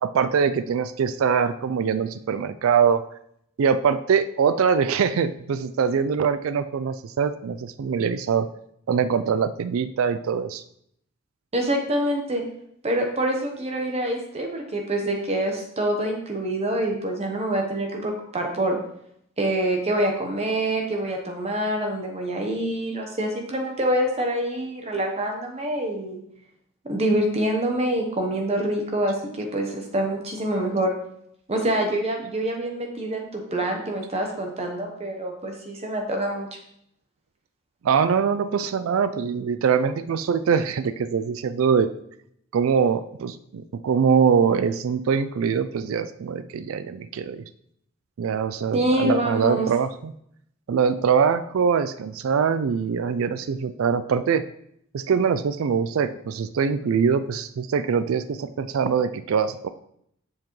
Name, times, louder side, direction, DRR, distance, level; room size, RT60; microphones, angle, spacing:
voice 1, 0.0-3.0 3.6-8.5 8.9-10.6 37.8-41.9 42.5-47.4 48.2-50.1 50.7-54.4 54.9-59.7, right 6 dB, 70° right, 13 dB, 0.4 m, -23 dB
voice 2, 11.5-12.4 12.8-18.8 19.4-26.2 26.8-30.9 31.5-36.5 48.7-49.7, right 1 dB, 30° right, 2 dB, 0.9 m, -26 dB
7.3 x 7.3 x 3.1 m, 0.72 s
head